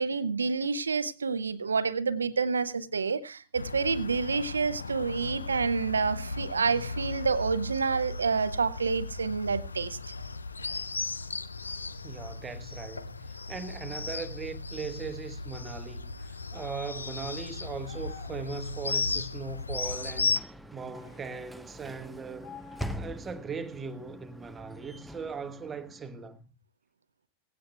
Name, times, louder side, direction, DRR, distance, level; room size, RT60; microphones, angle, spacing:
voice 1, 0.0-10.0, right 5 dB, 75° right, 0.7 m, -28 dB
sound 1, 3.5-20.4, left 3 dB, 80° left, 0.5 m, -36 dB
voice 2, 12.0-20.4 20.7-22.5 23.0-26.5, right 5 dB, 20° right, 1.2 m, -39 dB
sound 2, 16.5-17.0 17.8-18.4 20.9-21.4 22.4-23.2, left 6 dB, 50° left, 4.1 m, -49 dB
Sliding door / Slam, 19.4-26.4, equal, ahead, 0.8 m, -44 dB
18.0 x 16.5 x 2.3 m
figure-of-eight pair, 90°, 0 cm